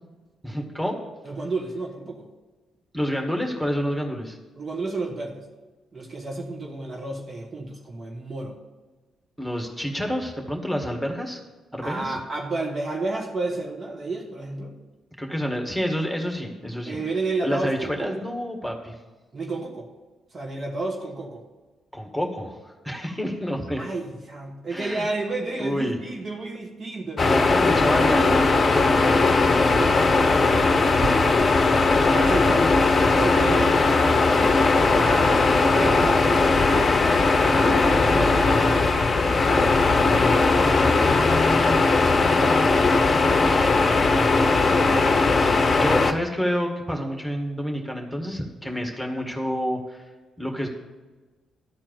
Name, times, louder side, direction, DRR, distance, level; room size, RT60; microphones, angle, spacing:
voice 1, 0.4-1.0 2.9-4.4 9.4-11.4 11.7-12.2 15.2-17.0 17.4-18.9 21.9-22.6 22.8-23.8 24.7-25.0 25.6-26.0 27.2-29.3 43.5-43.7 44.6-50.0 50.4-50.7, equal, ahead, 1 dB, 1.8 m, -28 dB
voice 2, 1.2-2.3 4.6-5.5 5.9-8.6 11.8-14.7 16.9-18.1 19.3-19.9 20.3-21.4 23.8-27.2 29.6-31.4 32.0-37.0 37.3-39.0 39.5-42.7 44.4-45.1 48.6-48.8, right 3 dB, 40° right, 0 dB, 1.5 m, -32 dB
sound 1, 27.2-46.1, left 3 dB, 40° left, 0.7 m, -19 dB
sound 2, 30.9-31.1 32.2-32.5 35.3-38.1, right 4 dB, 65° right, 1.3 m, -40 dB
12.5 x 4.4 x 7.7 m, 1.2 s
figure-of-eight pair, 40°, 0 cm